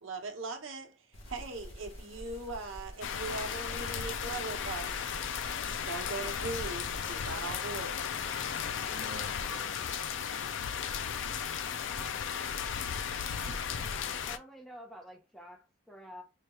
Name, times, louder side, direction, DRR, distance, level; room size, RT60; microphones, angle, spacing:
voice 1, 0.0-0.9 1.3-5.2 5.8-8.1, right 3 dB, 85° right, 0.8 m, -40 dB
sound 1, 1.1-7.5, equal, 90° left, 1.5 m, -47 dB
sound 2, 3.0-14.4, left 7 dB, 70° left, 0.4 m, -35 dB
voice 2, 8.8-10.2 13.1-13.7 14.0-14.1, right 2 dB, 40° right, 0.7 m, -50 dB
voice 3, 13.8-16.2, equal, ahead, 0.6 m, -49 dB
4.7 x 2.3 x 2.9 m
head